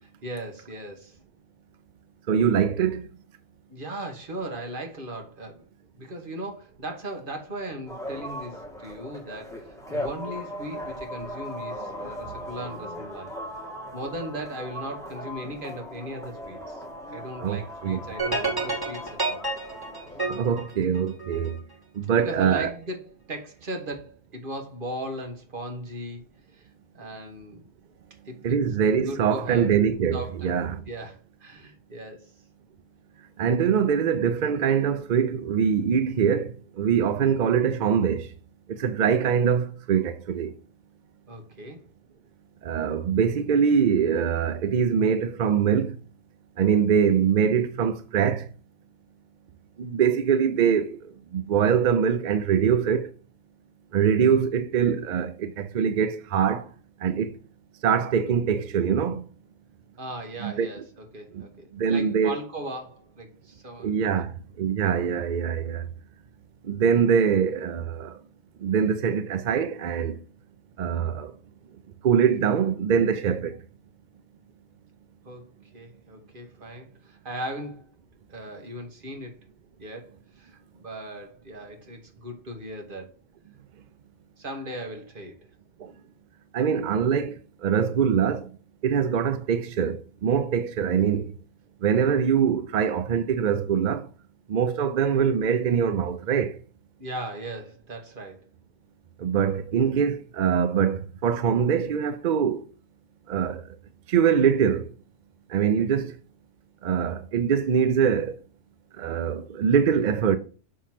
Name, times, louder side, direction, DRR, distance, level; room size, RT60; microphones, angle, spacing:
voice 1, 0.2-1.2 3.7-5.6 5.9-13.3 13.9-16.8 17.1-19.4 22.1-26.2 26.5-26.7 26.9-27.7 28.2-28.6 29.1-29.7 30.1-30.5 30.9-32.4 41.3-41.8 60.0-64.3 65.6-65.8 75.2-77.9 78.3-79.4 79.8-83.1 84.4-85.4 97.0-98.4, right 1 dB, 45° right, 1.4 m, -38 dB
voice 2, 2.3-3.1 17.4-18.0 20.3-21.6 21.9-22.7 28.4-30.8 33.4-38.3 38.7-40.6 42.6-46.0 46.6-48.5 49.8-53.1 53.9-56.7 57.0-57.3 57.8-59.2 60.4-60.7 61.3-61.4 61.7-62.4 63.8-65.9 66.6-68.2 68.6-70.2 70.8-71.3 72.0-73.6 85.8-85.9 86.5-88.5 88.8-91.3 91.8-94.1 94.5-96.6 99.2-102.6 103.3-103.8 104.1-104.9 105.5-106.2 106.8-108.4 109.0-110.4, right 7 dB, 60° right, 0.5 m, -23 dB
sound 1, 7.9-20.3, equal, 5° left, 1.4 m, -38 dB
sound 2, 18.2-21.6, right 3 dB, 15° right, 1.7 m, -29 dB
6.3 x 3.1 x 5.7 m
omnidirectional pair, 1.3 m